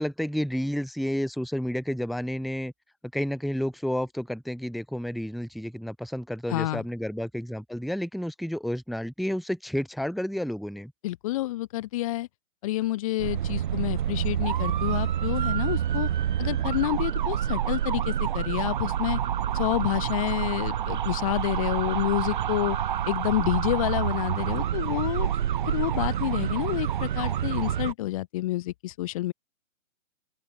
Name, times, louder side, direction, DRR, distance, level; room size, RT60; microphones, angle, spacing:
voice 1, 0.0-2.7 3.1-10.9, equal, ahead, 0.8 m, -30 dB
voice 2, 6.5-6.8 11.0-12.3 12.6-16.1 16.4-19.2 19.5-22.8 23.1-25.3 25.6-29.3, left 16 dB, 25° left, 1.3 m, -29 dB
sound 1, 13.2-27.9, right 10 dB, 35° right, 0.9 m, -28 dB
open air
figure-of-eight pair, 140°, 40 cm